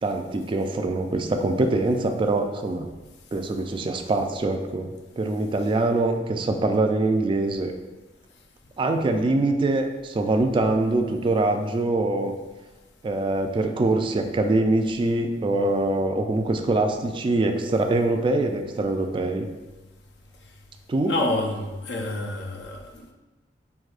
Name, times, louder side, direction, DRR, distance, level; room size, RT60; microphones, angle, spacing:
voice 1, 0.0-2.9 3.3-4.9 5.2-7.7 8.8-12.3 13.0-19.5 20.9-21.1, right 2 dB, 30° right, 5 dB, 0.3 m, -24 dB
voice 2, 21.0-23.1, left 2 dB, 70° left, 2 dB, 0.6 m, -28 dB
6.0 x 2.7 x 2.4 m, 1.2 s
head